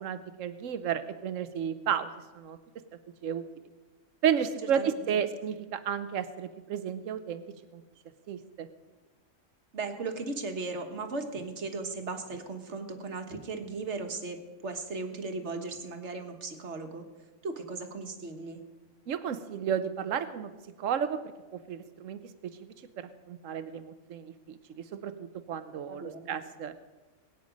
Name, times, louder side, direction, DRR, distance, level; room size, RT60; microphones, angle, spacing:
voice 1, 0.0-2.1 2.3-2.6 3.2-3.4 4.2-7.4 7.7-7.8 8.3-8.7 19.1-20.5 20.8-21.2 21.5-22.6 23.0-26.7, right 8 dB, 85° right, 11 dB, 1.1 m, -32 dB
voice 2, 9.7-17.0 17.4-18.6 25.9-26.4, right 3 dB, 65° right, 5 dB, 1.7 m, -37 dB
22.0 x 9.4 x 5.2 m, 1.2 s
omnidirectional pair, 1.3 m